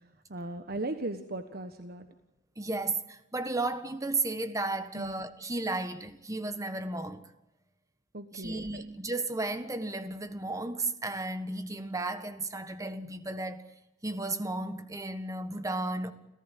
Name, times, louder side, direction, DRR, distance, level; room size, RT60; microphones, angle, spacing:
voice 1, 0.3-2.1 4.9-5.1 8.1-8.8, right 2 dB, 55° right, 1.3 m, -37 dB
voice 2, 2.6-7.3 8.3-13.7 14.0-16.1, right 2 dB, 20° right, 1.5 m, -34 dB
29.0 x 15.5 x 9.3 m
head